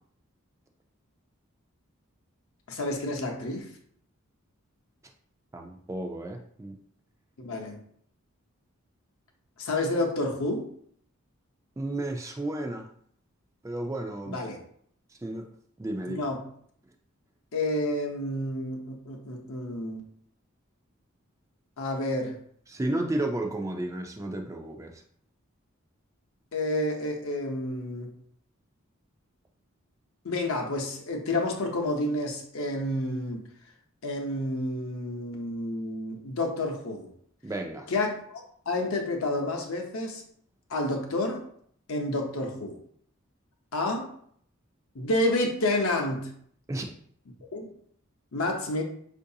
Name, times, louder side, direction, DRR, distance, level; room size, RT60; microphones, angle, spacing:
voice 1, 2.7-3.7 7.4-7.8 9.6-10.7 14.3-14.6 16.1-16.4 17.5-20.0 21.8-22.4 26.5-28.1 30.2-33.5 34.0-37.1 37.9-40.2 40.7-41.5 41.9-42.8 43.7-44.1 44.9-46.3 47.5-47.7 48.3-48.8, left 1 dB, 75° left, 2 dB, 0.7 m, -29 dB
voice 2, 5.5-6.8 11.8-12.9 13.6-14.4 15.2-15.5 15.8-16.3 22.7-25.0 37.4-37.9 46.7-46.9, right 1 dB, 15° right, 3 dB, 0.3 m, -32 dB
4.6 x 2.6 x 2.7 m, 0.63 s
head